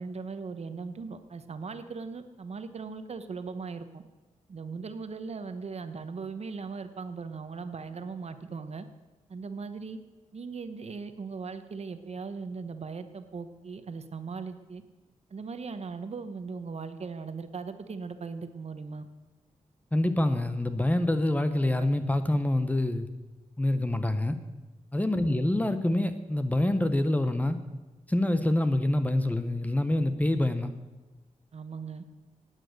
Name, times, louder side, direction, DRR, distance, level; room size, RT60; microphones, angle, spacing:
voice 1, 0.0-4.0 4.5-8.9 9.3-10.0 10.3-14.8 15.3-19.1 25.2-25.3 31.5-32.0, right 4 dB, 55° right, 10 dB, 1.0 m, -39 dB
voice 2, 19.9-23.1 23.6-24.4 24.9-27.6 28.1-30.7, left 1 dB, 10° left, 9 dB, 0.9 m, -26 dB
17.5 x 9.2 x 6.5 m, 1.1 s
wide cardioid pair, 110°, 13 cm